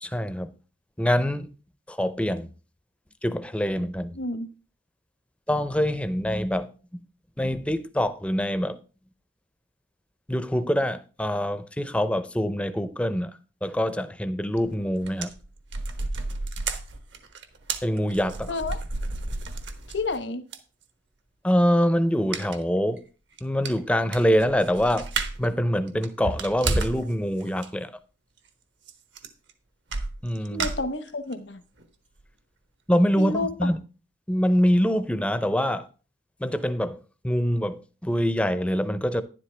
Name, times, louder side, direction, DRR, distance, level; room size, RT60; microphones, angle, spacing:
voice 1, 0.0-0.5 1.0-1.5 1.9-2.5 3.2-4.1 5.5-7.0 7.4-8.8 10.3-15.3 17.8-18.5 21.4-23.0 23.4-25.1 25.4-27.9 30.2-30.7 32.9-33.8 34.3-35.9 36.4-39.2, equal, 5° left, 0.5 m, -25 dB
voice 2, 4.1-4.5 18.5-18.8 19.9-20.4 30.5-31.6 33.2-33.5, left 2 dB, 65° left, 1.0 m, -30 dB
sound 1, 14.6-14.7 15.0-20.2 20.5-20.6 22.3-22.6 23.0-23.1 23.4-23.5 23.6-25.5 25.9-27.1 27.4-27.7 28.9-29.0 29.2-29.5 29.9-31.3 31.8-31.9 32.2-32.3, right 3 dB, 65° right, 1.2 m, -31 dB
11.5 x 10.5 x 3.3 m
head